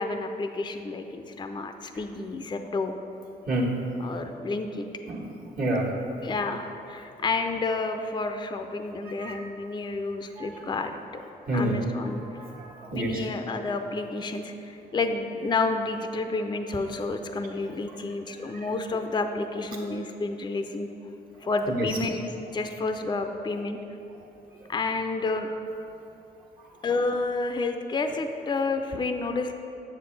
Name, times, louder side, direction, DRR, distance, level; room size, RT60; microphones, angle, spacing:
voice 1, 0.0-2.9 4.0-4.8 6.2-11.2 11.5-12.2 12.9-20.9 21.4-22.2 22.5-23.8 24.7-25.5 26.8-29.5, left 3 dB, 25° left, 6 dB, 0.5 m, -30 dB
voice 2, 5.5-5.9 6.2-6.3 9.0-9.4 10.4-10.6 11.5-13.2 18.3-18.7 21.7-21.9 24.6-24.7 25.4-25.5, right 1 dB, 55° right, -3 dB, 1.5 m, -30 dB
7.6 x 6.9 x 3.3 m, 2.9 s
cardioid pair, 75°, 18 cm